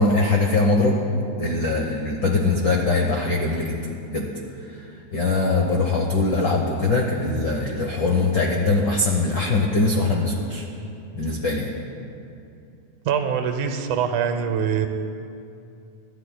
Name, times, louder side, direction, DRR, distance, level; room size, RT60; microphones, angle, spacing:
voice 1, 0.0-4.3 4.6-10.6 11.2-11.7, left 3 dB, 75° left, 0 dB, 1.0 m, -22 dB
voice 2, 13.1-14.9, right 7 dB, 80° right, 7 dB, 2.2 m, -23 dB
26.0 x 11.5 x 2.2 m, 2.6 s
omnidirectional pair, 3.5 m